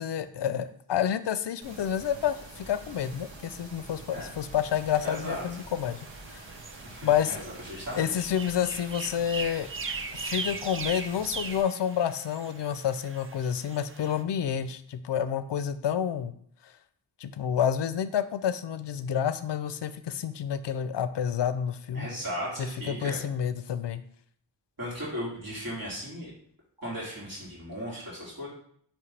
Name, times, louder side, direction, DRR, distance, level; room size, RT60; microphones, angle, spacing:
voice 1, 0.0-6.0 6.3-6.4 7.0-7.4 8.0-9.7 10.1-16.3 17.2-22.1 22.6-24.0, left 9 dB, 70° left, 12 dB, 0.5 m, -29 dB
sound 1, 1.6-11.6, right 2 dB, 85° right, 1.3 m, -46 dB
sound 2, 4.7-14.2, right 4 dB, 30° right, 0.4 m, -40 dB
voice 2, 5.0-5.4 6.8-7.0 7.3-8.2 21.9-23.2 24.8-26.3 26.8-28.5, equal, 50° right, -6 dB, 2.7 m, -36 dB
9.4 x 3.2 x 3.3 m, 0.63 s
wide cardioid pair, 80°, 45 cm